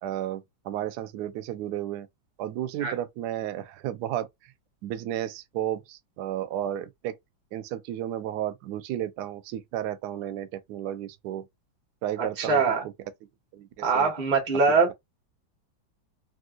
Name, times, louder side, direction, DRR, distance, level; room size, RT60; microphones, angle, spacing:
voice 1, 0.0-2.1 2.4-4.5 4.8-7.2 7.5-11.4 12.0-12.6 13.5-14.1 14.7-14.9, right 12 dB, 75° right, 1.0 m, -33 dB
voice 2, 12.2-12.9 13.8-14.9, right 4 dB, 30° right, 1.0 m, -23 dB
3.5 x 2.5 x 2.4 m
omnidirectional pair, 2.2 m